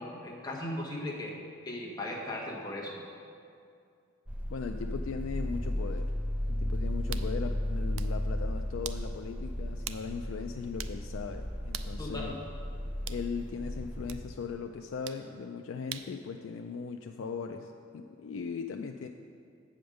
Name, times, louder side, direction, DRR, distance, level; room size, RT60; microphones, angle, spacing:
voice 1, 0.0-1.4 1.6-3.0 12.0-12.3, left 1 dB, 20° left, -3 dB, 1.2 m, -37 dB
sound 1, 4.3-14.1, left 1 dB, 5° right, 0.5 m, -34 dB
voice 2, 4.5-6.1 6.5-12.4 13.1-19.1, left 5 dB, 75° left, 4 dB, 0.3 m, -38 dB
sound 2, 7.1-7.3 7.8-8.2 8.8-9.1 9.9-10.1 10.4-10.5 10.8-11.0 11.7-12.0 13.1-13.3 14.1-14.2 15.1-15.3 15.9-16.2, right 11 dB, 85° right, 0.4 m, -41 dB
7.8 x 5.1 x 6.5 m, 2.4 s
head